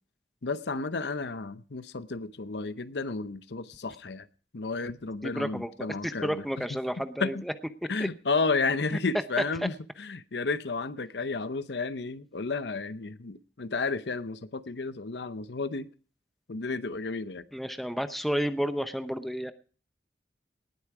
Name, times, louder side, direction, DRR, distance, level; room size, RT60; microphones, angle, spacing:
voice 1, 0.4-4.3 4.5-6.8 7.2-7.4 7.9-15.9 16.5-17.4, left 4 dB, 75° left, 0.8 m, -32 dB
voice 2, 5.2-7.5 7.8-8.1 17.5-19.5, equal, ahead, 0.7 m, -31 dB
19.0 x 8.4 x 4.8 m
head